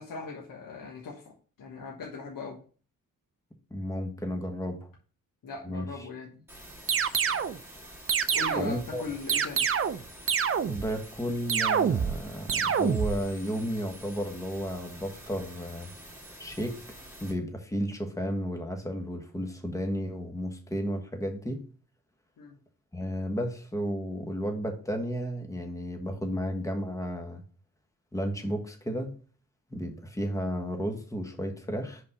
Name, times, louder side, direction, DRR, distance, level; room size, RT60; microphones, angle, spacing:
voice 1, 0.0-2.6 5.4-6.4 8.3-9.7 22.4-22.6, left 4 dB, 70° left, -1 dB, 1.3 m, -39 dB
voice 2, 3.7-4.9 5.6-6.1 8.5-9.0 10.7-15.9 16.4-16.8 17.2-21.6 22.9-27.4 28.1-29.1 29.7-32.0, equal, 10° left, 4 dB, 1.3 m, -33 dB
sound 1, 6.5-17.3, right 1 dB, 5° right, 2.1 m, -48 dB
sound 2, 6.9-7.6 8.1-8.8 9.3-10.0 10.3-10.9 11.5-12.2 12.5-13.2, right 7 dB, 40° right, 0.5 m, -26 dB
5.2 x 4.0 x 5.6 m, 0.41 s
cardioid pair, 75°, 35 cm